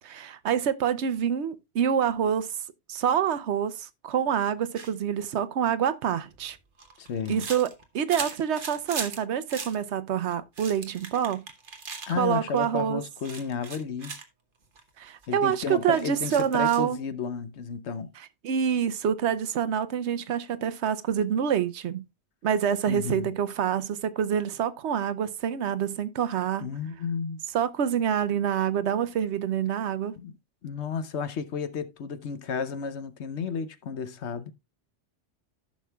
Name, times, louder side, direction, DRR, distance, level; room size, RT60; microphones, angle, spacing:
voice 1, 0.0-2.5 2.9-6.6 7.3-7.7 7.9-11.5 12.1-13.0 15.0-17.0 18.4-22.1 22.4-26.8 27.5-30.2, right 8 dB, 75° right, 1.0 m, -27 dB
sound 1, 4.8-4.9 6.3-9.2 9.5-9.8 10.3-12.1 12.6-12.8 13.2-14.2 14.8-14.9 15.1-15.3 15.9-16.9, right 4 dB, 50° right, 1.3 m, -39 dB
voice 2, 7.0-7.5 12.1-14.1 15.3-18.1 22.9-23.3 26.6-27.4 30.2-30.4 30.6-34.5, left 6 dB, 75° left, 1.1 m, -32 dB
14.5 x 6.2 x 2.3 m
omnidirectional pair, 1.2 m